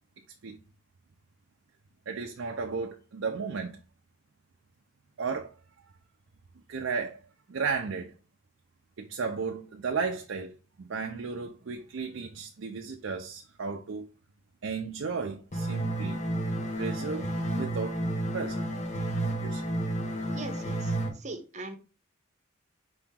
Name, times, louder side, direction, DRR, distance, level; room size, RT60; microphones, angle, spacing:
voice 1, 2.1-3.8 5.2-5.5 6.7-7.2 7.5-8.1 9.0-10.5 10.8-14.1 14.6-16.2 16.8-17.3 17.6-18.0 18.3-18.6 19.2-19.6, right 5 dB, 65° right, 0.5 m, -34 dB
sound 1, 15.5-21.1, right 1 dB, 35° left, 0.9 m, -31 dB
voice 2, 20.3-21.8, right 2 dB, 35° right, 0.7 m, -41 dB
5.0 x 2.9 x 3.6 m
head